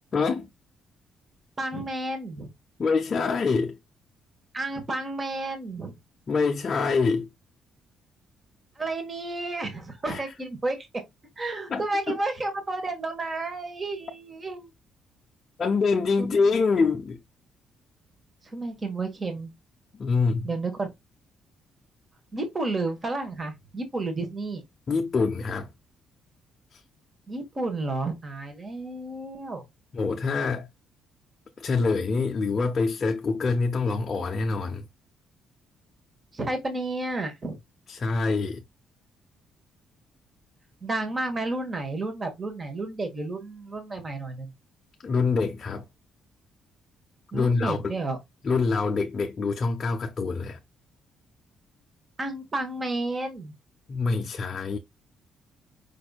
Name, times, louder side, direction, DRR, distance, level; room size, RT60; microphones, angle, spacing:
voice 1, 0.1-0.5 2.8-3.8 6.3-7.3 10.1-10.3 11.7-12.2 15.6-17.2 20.0-20.5 24.9-25.7 26.7-26.8 29.9-30.7 31.6-34.8 37.9-38.6 45.0-45.8 47.3-47.9 48.4-50.6 53.9-54.8, left 4 dB, 30° left, 0.6 m, -25 dB
voice 2, 1.6-2.5 4.5-5.9 8.8-10.9 11.4-14.7 16.2-16.3 18.5-19.5 20.4-20.9 22.3-24.6 27.3-29.6 36.3-37.5 40.8-44.5 47.3-48.2 52.2-53.5, right 2 dB, 20° right, 1.3 m, -31 dB
5.3 x 4.3 x 2.3 m
cardioid pair, 170°, 0 cm